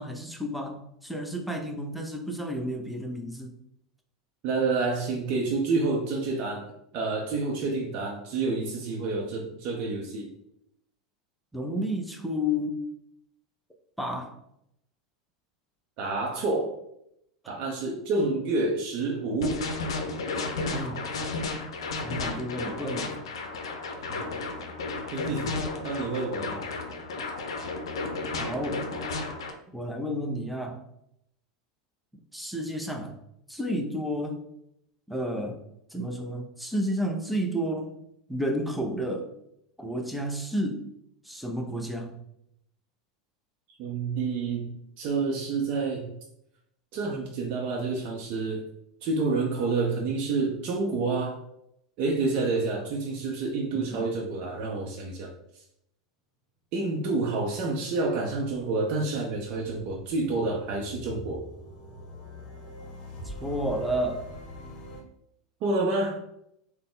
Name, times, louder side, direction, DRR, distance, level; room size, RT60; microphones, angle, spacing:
voice 1, 0.0-3.6 11.5-12.8 14.0-14.4 20.7-21.1 22.0-23.1 28.4-28.9 29.7-30.8 32.3-33.2 33.5-34.4 35.1-35.6 35.9-37.9 38.3-39.3 39.8-40.9 41.2-42.2 53.7-54.1 63.2-64.2, equal, ahead, 2 dB, 0.7 m, -31 dB
voice 2, 4.4-10.3 16.0-16.7 17.5-19.7 24.1-24.2 25.1-25.5 25.8-26.6 43.8-46.1 46.9-48.6 49.0-51.4 52.0-55.3 56.7-61.4 65.6-66.2, right 3 dB, 50° right, -1 dB, 0.6 m, -28 dB
sound 1, 19.4-29.5, left 3 dB, 75° left, 0.5 m, -33 dB
sound 2, 59.2-65.0, left 1 dB, 45° left, 0.9 m, -44 dB
3.8 x 2.1 x 3.7 m, 0.78 s
hypercardioid pair, 90°, 3 cm